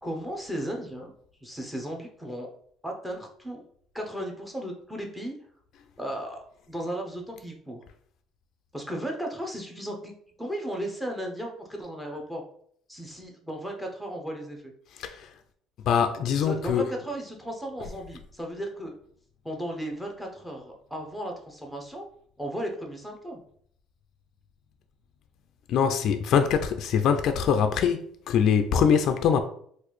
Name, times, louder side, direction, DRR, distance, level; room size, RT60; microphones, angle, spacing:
voice 1, 0.0-1.1 1.4-2.5 2.8-3.6 3.9-5.3 6.0-7.8 8.7-10.1 10.4-12.4 12.9-14.7 16.4-18.9 19.4-22.1 22.4-23.4, equal, 5° right, 0.7 m, -35 dB
voice 2, 14.9-15.3 15.9-16.9 25.7-29.4, left 7 dB, 55° left, 0.3 m, -23 dB
3.9 x 2.5 x 3.1 m
cardioid pair, 135°, 0 cm